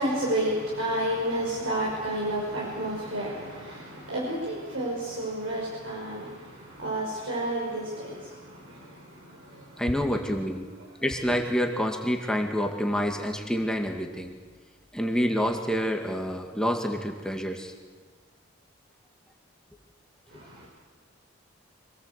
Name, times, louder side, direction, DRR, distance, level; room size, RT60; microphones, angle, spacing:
voice 1, 0.0-9.7 20.3-20.7, right 1 dB, 70° right, -4 dB, 5.4 m, -31 dB
voice 2, 9.8-10.7 11.0-14.3 14.9-17.7, equal, 5° left, 2 dB, 2.0 m, -27 dB
26.5 x 19.0 x 8.2 m, 1.5 s
head